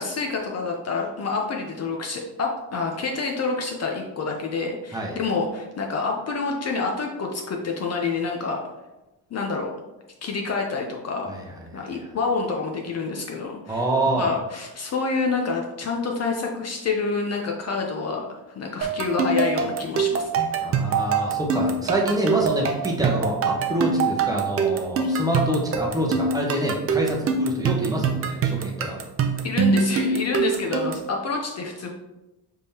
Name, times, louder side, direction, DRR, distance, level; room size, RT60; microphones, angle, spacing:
voice 1, 0.0-8.6 9.3-9.7 10.2-11.3 11.7-13.8 14.2-20.7 23.9-24.1 25.0-25.1 29.4-31.9, left 4 dB, 40° left, 1 dB, 0.6 m, -28 dB
voice 2, 11.7-12.1 13.7-14.4 20.6-29.0, right 1 dB, 10° right, -1 dB, 0.9 m, -26 dB
sound 1, 18.8-31.1, right 5 dB, 35° right, 0.5 m, -24 dB
5.1 x 3.6 x 2.8 m, 1.0 s
cardioid pair, 110°, 42 cm